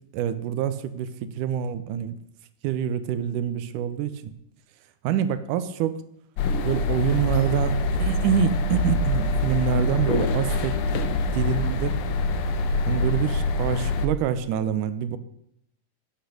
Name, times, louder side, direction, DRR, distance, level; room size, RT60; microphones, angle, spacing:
voice 1, 0.1-2.2 2.6-4.3 5.0-6.0 6.6-10.8 11.3-12.0 12.9-15.2, right 9 dB, 85° right, 13 dB, 2.2 m, -26 dB
sound 1, 6.4-14.1, left 2 dB, 80° left, 1.2 m, -25 dB
10.5 x 7.9 x 6.5 m, 0.76 s
omnidirectional pair, 3.7 m